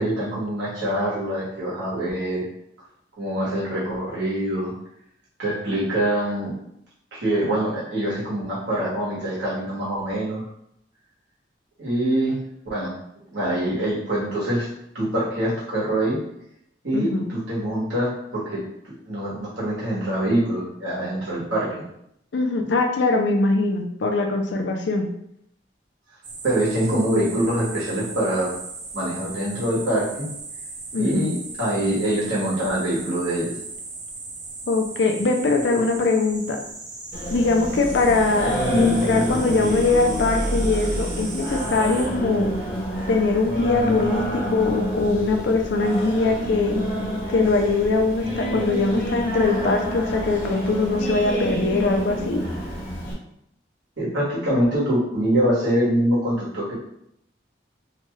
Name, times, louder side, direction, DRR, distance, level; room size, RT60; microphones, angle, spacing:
voice 1, 0.0-2.4 3.2-4.7 5.4-6.5 7.1-10.4 11.8-12.4 12.6-13.0 13.3-14.7 14.9-16.2 16.8-21.8 26.4-28.5 28.9-30.3 31.0-33.5 54.0-56.7, right 1 dB, 80° right, -6 dB, 1.3 m, -24 dB
voice 2, 16.9-17.3 22.3-25.1 30.9-31.3 34.7-36.6 37.3-42.5 43.1-46.8 47.3-52.4, left 3 dB, 75° left, 3 dB, 0.4 m, -22 dB
sound 1, 26.2-42.1, right 3 dB, 40° right, 0.5 m, -37 dB
Singing, 37.1-53.1, equal, 45° left, 0.7 m, -27 dB
2.8 x 2.2 x 3.0 m, 0.75 s
head